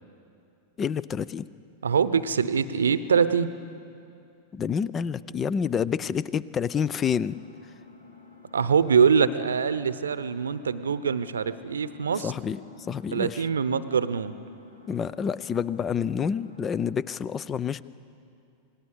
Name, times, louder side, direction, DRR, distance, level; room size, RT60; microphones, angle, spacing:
voice 1, 0.8-1.5 4.5-7.4 12.2-12.6 12.9-13.4 14.9-17.8, left 7 dB, 25° left, 19 dB, 0.6 m, -28 dB
voice 2, 1.8-3.5 8.5-12.3 13.1-14.4, right 6 dB, 70° right, 15 dB, 0.9 m, -24 dB
Engine, 6.9-16.9, left 4 dB, 65° left, 2.2 m, -51 dB
27.0 x 19.5 x 8.2 m, 2.6 s
figure-of-eight pair, 90°, 0 cm